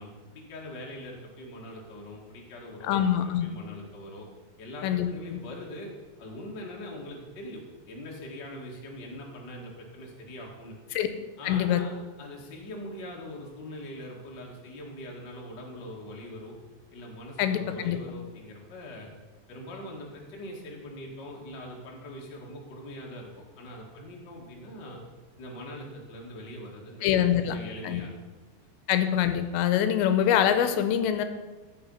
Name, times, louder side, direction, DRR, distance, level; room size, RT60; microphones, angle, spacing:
voice 1, 0.0-3.1 3.4-4.2 4.6-5.9 6.2-10.7 11.4-16.5 16.9-19.1 19.5-25.0 25.4-28.1, left 1 dB, 45° left, -2 dB, 1.4 m, -42 dB
voice 2, 2.8-3.5 4.8-5.4 10.9-11.1 11.4-11.8 17.4-18.0 27.0-27.6 27.8-28.0 28.9-31.2, left 10 dB, 85° left, 9 dB, 2.9 m, -24 dB
14.0 x 6.0 x 5.5 m, 1.3 s
omnidirectional pair, 5.1 m